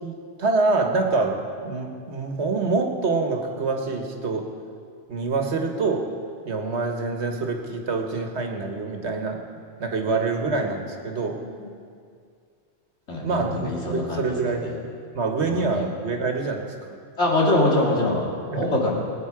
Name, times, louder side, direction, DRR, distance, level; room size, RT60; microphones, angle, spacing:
voice 1, 0.0-4.5 5.1-6.1 6.4-9.4 9.8-11.4 13.2-14.7 15.1-16.9 18.5-18.7, right 3 dB, 75° right, 4 dB, 1.6 m, -26 dB
voice 2, 13.1-14.8 15.4-15.9 17.2-18.9, left 1 dB, 85° left, -3 dB, 2.9 m, -24 dB
20.5 x 9.4 x 4.9 m, 2.2 s
omnidirectional pair, 1.1 m